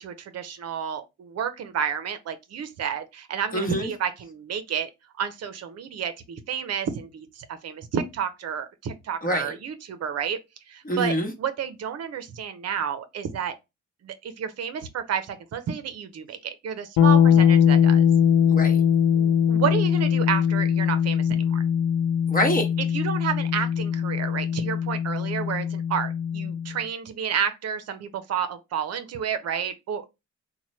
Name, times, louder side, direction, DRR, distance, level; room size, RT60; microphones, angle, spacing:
voice 1, 0.0-4.9 5.2-10.4 10.7-13.5 14.0-18.1 19.1-21.6 22.9-30.0, right 8 dB, 55° right, 0.6 m, -30 dB
voice 2, 3.5-3.9 9.2-9.6 10.8-11.3 18.5-18.8 22.3-22.7, equal, 30° left, 1.1 m, -25 dB
sound 1, 17.0-26.7, left 8 dB, 80° left, 0.5 m, -21 dB
3.0 x 2.2 x 4.2 m
cardioid pair, 90°, 30 cm